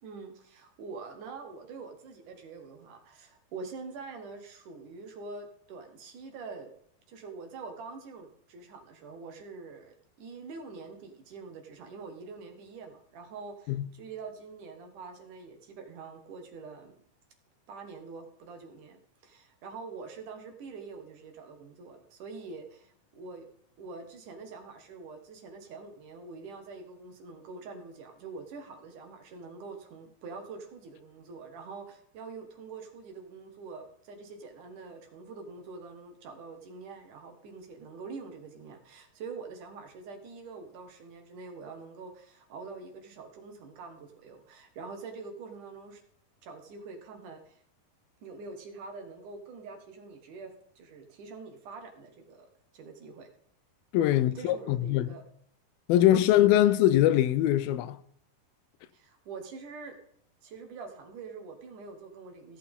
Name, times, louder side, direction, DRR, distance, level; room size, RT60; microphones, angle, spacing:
voice 1, 0.0-6.7 7.1-17.0 17.7-23.5 23.8-46.0 46.4-47.6 48.2-52.5 52.7-53.3 54.1-55.2 56.0-56.3 58.9-60.0 60.4-62.6, right 4 dB, 60° right, 2.7 m, -45 dB
voice 2, 53.9-55.1 55.9-58.0, left 13 dB, 80° left, 2.3 m, -22 dB
16.0 x 8.5 x 3.6 m
omnidirectional pair, 4.4 m